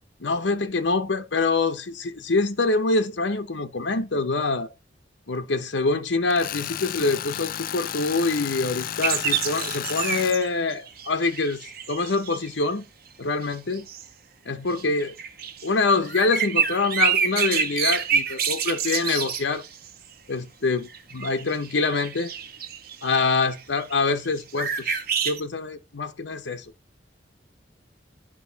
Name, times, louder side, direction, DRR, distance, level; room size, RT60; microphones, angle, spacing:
voice 1, 0.2-4.7 5.3-12.8 13.2-13.9 14.4-15.2 15.6-19.6 20.3-22.3 23.0-26.7, left 3 dB, 85° left, 0.9 m, -25 dB
Tools, 6.3-10.4, left 10 dB, 50° left, 0.4 m, -32 dB
sound 1, 9.0-12.6 13.4-14.0 14.7-19.9 20.9-24.3 24.6-25.4, right 7 dB, 55° right, 1.3 m, -28 dB
10.0 x 5.3 x 4.0 m
head